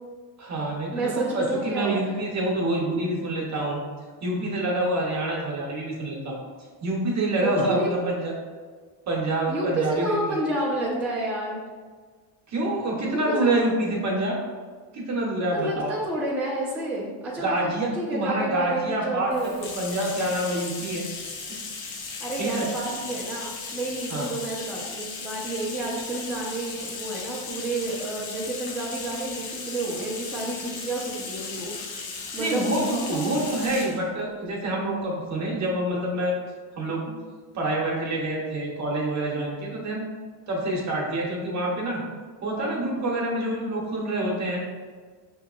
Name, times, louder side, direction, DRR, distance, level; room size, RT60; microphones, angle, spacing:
voice 1, 0.4-3.8 4.2-6.4 6.8-8.3 9.1-10.1 12.5-14.4 14.9-15.9 17.4-21.1 22.4-22.7 24.1-24.3 32.4-36.3 36.7-37.0 37.5-40.1 40.5-42.0 42.4-44.6, right 1 dB, 35° right, -3 dB, 1.0 m, -27 dB
voice 2, 0.9-2.2 7.3-7.9 9.5-11.6 13.1-13.5 15.5-19.8 22.0-32.7 33.1-33.3, right 2 dB, 5° right, -8 dB, 0.7 m, -30 dB
Bathtub (filling or washing), 19.3-34.0, left 4 dB, 50° left, 0.8 m, -36 dB
5.6 x 2.9 x 2.4 m, 1.5 s
cardioid pair, 135°, 46 cm